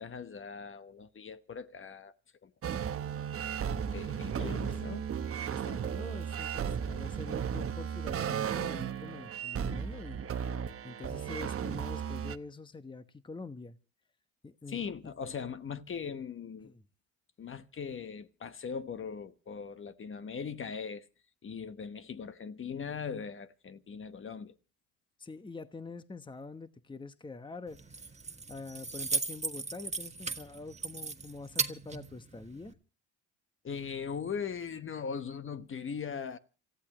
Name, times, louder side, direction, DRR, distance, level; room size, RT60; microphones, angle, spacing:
voice 1, 0.0-2.1 2.4-2.5 3.9-5.1 14.7-16.7 17.4-21.1 21.4-24.5 33.6-36.4, left 6 dB, 35° left, 1.2 m, -40 dB
sound 1, 2.6-12.4, right 8 dB, 40° right, 1.0 m, -35 dB
voice 2, 4.1-4.7 5.5-10.2 10.5-13.8 14.4-15.1 16.6-16.8 25.2-28.1 28.5-32.7, left 3 dB, 15° left, 1.1 m, -45 dB
Keys jangling, 27.7-32.7, right 4 dB, 20° right, 1.5 m, -37 dB
28.0 x 15.0 x 3.0 m
supercardioid pair, 80°, 35 cm